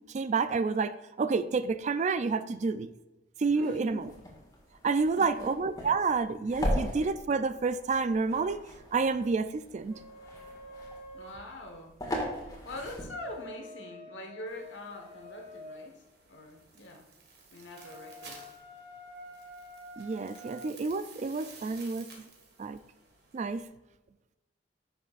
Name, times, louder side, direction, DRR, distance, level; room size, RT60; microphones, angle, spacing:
voice 1, 0.1-2.9 3.4-4.0 4.8-9.9 20.0-22.1 22.6-22.8 23.3-23.7, right 4 dB, 40° right, 13 dB, 0.3 m, -29 dB
voice 2, 3.5-4.1 5.2-5.4 11.1-12.0 12.3-17.1 17.5-18.4, left 1 dB, 80° left, 3 dB, 1.3 m, -44 dB
sound 1, 3.9-13.5, equal, 20° left, 1.8 m, -39 dB
sound 2, 9.9-11.4 13.0-15.9 17.7-20.7, left 1 dB, 75° right, 2.4 m, -48 dB
sound 3, 14.5-23.6, right 4 dB, 60° right, 1.7 m, -54 dB
10.5 x 6.2 x 2.5 m, 1.0 s
head